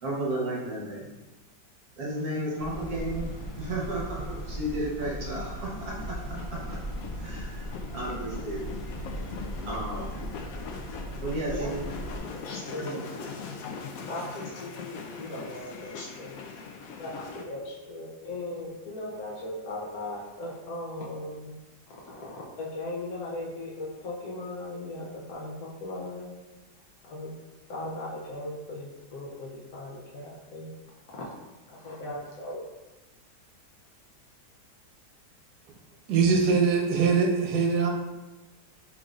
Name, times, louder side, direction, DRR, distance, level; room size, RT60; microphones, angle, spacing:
voice 1, 0.0-1.1 2.0-6.7 7.2-8.8 9.6-10.2 11.1-11.8 12.8-13.0, right 1 dB, 55° right, -4 dB, 1.4 m, -33 dB
sound 1, 2.1-17.4, left 5 dB, 85° left, 0.7 m, -42 dB
sound 2, 2.6-12.2, right 1 dB, 40° left, 0.7 m, -38 dB
voice 2, 12.4-13.0 14.1-16.4 17.0-21.5 21.9-26.3 27.0-27.3 27.7-30.7 31.2-31.3 31.7-32.6, left 2 dB, 65° left, -4 dB, 1.0 m, -38 dB
voice 3, 36.1-37.9, right 5 dB, 75° right, 1 dB, 1.3 m, -22 dB
4.5 x 3.8 x 2.4 m, 1.1 s
omnidirectional pair, 2.0 m